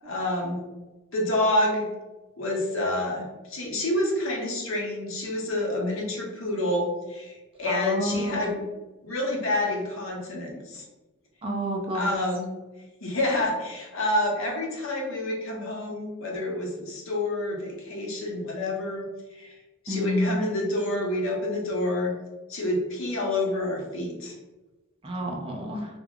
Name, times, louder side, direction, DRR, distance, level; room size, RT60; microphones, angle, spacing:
voice 1, 0.0-0.6 1.1-1.9 2.4-8.6 9.0-10.8 11.9-12.5 13.0-19.1 19.3-19.5 19.8-22.1 22.5-24.3, left 1 dB, 65° left, -2 dB, 0.7 m, -28 dB
voice 2, 7.7-8.5 11.4-12.2 19.9-20.4 25.0-25.9, equal, 25° right, 1 dB, 0.3 m, -29 dB
2.3 x 2.1 x 3.5 m, 1.1 s
head